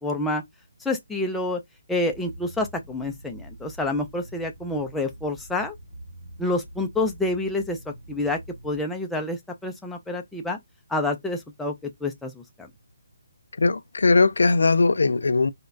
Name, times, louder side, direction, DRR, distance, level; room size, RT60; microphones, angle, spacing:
voice 1, 0.0-0.4 0.8-1.6 1.9-5.7 6.4-10.6 10.9-11.7 12.0-12.7, left 2 dB, 5° left, 0.3 m, -28 dB
sound 1, 2.1-8.8, right 1 dB, 65° right, 0.8 m, -45 dB
voice 2, 13.6-15.5, left 3 dB, 85° left, 0.3 m, -19 dB
3.8 x 2.1 x 2.4 m
hypercardioid pair, 170°, 0 cm